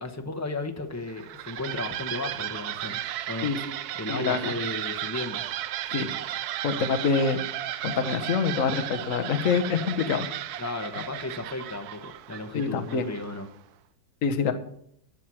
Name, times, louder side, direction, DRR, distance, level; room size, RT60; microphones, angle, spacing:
voice 1, 0.0-3.5 3.9-5.4 10.6-13.5, left 2 dB, 20° left, 4 dB, 0.4 m, -34 dB
sound 1, 1.0-13.5, right 12 dB, 70° right, 1.0 m, -35 dB
voice 2, 4.1-4.5 5.9-6.1 6.6-7.4 7.8-10.3 12.5-13.1 14.2-14.5, left 5 dB, 50° left, 8 dB, 1.3 m, -26 dB
12.0 x 7.4 x 6.2 m, 0.68 s
omnidirectional pair, 2.0 m